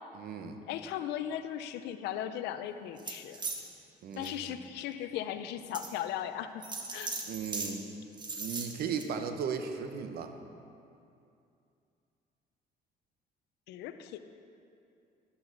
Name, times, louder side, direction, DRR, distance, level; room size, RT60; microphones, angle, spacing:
voice 1, 0.1-0.6 4.0-4.5 7.3-7.8 8.4-10.3, right 6 dB, 65° right, 7 dB, 1.0 m, -36 dB
voice 2, 0.7-3.4 4.1-6.6 6.9-7.2 13.7-14.2, left 10 dB, 85° left, 10 dB, 0.6 m, -37 dB
sound 1, 3.0-3.6 4.1-4.3 4.9-5.0 5.7-5.9 6.6-7.7 8.1-9.1, right 3 dB, 25° right, 1.4 m, -38 dB
12.5 x 11.5 x 4.0 m, 2.6 s
cardioid pair, 110°, 17 cm